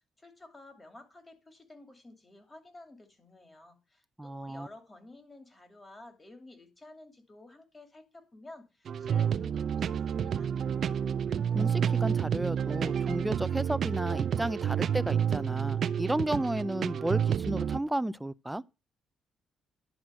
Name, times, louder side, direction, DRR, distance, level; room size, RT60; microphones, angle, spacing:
voice 1, 0.2-10.5, left 2 dB, 20° left, 2.7 m, -52 dB
voice 2, 4.2-4.7 11.5-18.6, right 1 dB, 10° right, 0.5 m, -33 dB
sound 1, 8.9-17.8, right 8 dB, 60° right, 0.5 m, -29 dB
11.0 x 4.4 x 7.6 m
cardioid pair, 90°, 0 cm